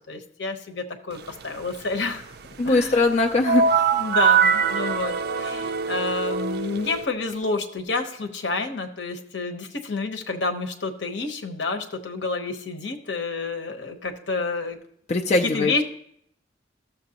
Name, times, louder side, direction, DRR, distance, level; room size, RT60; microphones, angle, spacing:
voice 1, 0.1-2.2 2.6-3.1 3.9-14.8 15.4-15.8, left 3 dB, 70° left, 6 dB, 1.0 m, -29 dB
voice 2, 2.6-3.9 15.1-15.8, left 2 dB, 40° left, 3 dB, 0.4 m, -21 dB
sound 1, 3.4-7.0, right 6 dB, 60° right, 0.4 m, -22 dB
14.0 x 6.9 x 2.9 m, 0.69 s
head